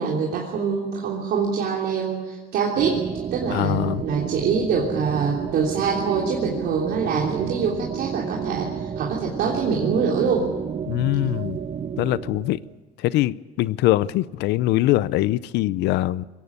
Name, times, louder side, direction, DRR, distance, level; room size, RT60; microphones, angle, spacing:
voice 1, 0.0-3.1 3.3-10.5, right 6 dB, 70° right, -2 dB, 3.3 m, -24 dB
sound 1, 2.8-12.7, right 7 dB, 40° right, 1.0 m, -31 dB
voice 2, 3.5-4.0 10.9-11.6 12.0-12.6 13.0-16.3, left 16 dB, 85° left, 18 dB, 0.6 m, -22 dB
21.5 x 17.0 x 9.7 m, 1.2 s
cardioid pair, 110°, 17 cm